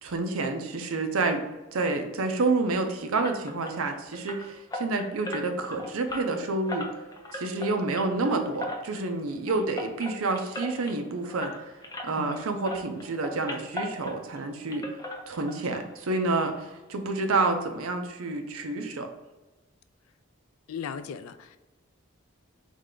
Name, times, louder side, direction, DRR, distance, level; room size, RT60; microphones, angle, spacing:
voice 1, 0.0-1.4 1.7-6.9 7.3-11.5 12.0-14.9 15.3-16.6 16.9-19.1, right 3 dB, 75° right, 5 dB, 0.6 m, -28 dB
sound 1, 3.2-12.4 12.6-14.4 14.7-15.8 16.1-16.2 16.6-16.7 17.1-17.2, left 1 dB, 15° left, 0.5 m, -38 dB
voice 2, 20.7-21.6, left 7 dB, 80° left, 12 dB, 0.3 m, -37 dB
3.6 x 3.2 x 3.7 m, 1.1 s
head